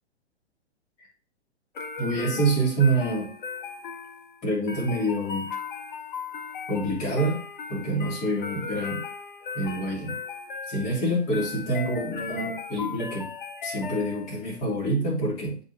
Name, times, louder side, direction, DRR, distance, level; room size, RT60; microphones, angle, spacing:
sound 1, 1.8-14.6, left 5 dB, 45° left, 1.0 m, -37 dB
voice 1, 2.0-3.3 4.4-5.6 6.7-7.4 7.7-9.0 9.5-10.2 10.7-13.3 13.6-15.6, right 2 dB, 25° left, -5 dB, 2.6 m, -26 dB
8.5 x 4.0 x 2.8 m, 0.41 s
figure-of-eight pair, 120°, 34 cm